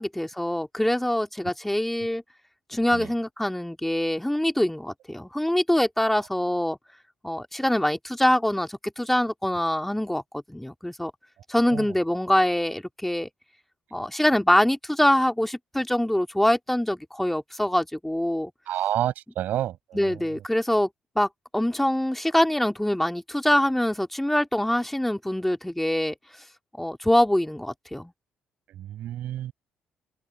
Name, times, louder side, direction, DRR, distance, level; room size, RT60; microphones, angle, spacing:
voice 1, 0.0-2.2 2.7-6.8 7.2-10.2 10.5-11.1 11.5-13.3 13.9-18.5 19.9-20.9 21.1-26.1 26.8-28.1, left 1 dB, 5° left, 3.0 m, -24 dB
voice 2, 18.7-20.4 28.7-29.5, right 12 dB, 60° right, 6.6 m, -30 dB
hypercardioid pair, 45°, 3 cm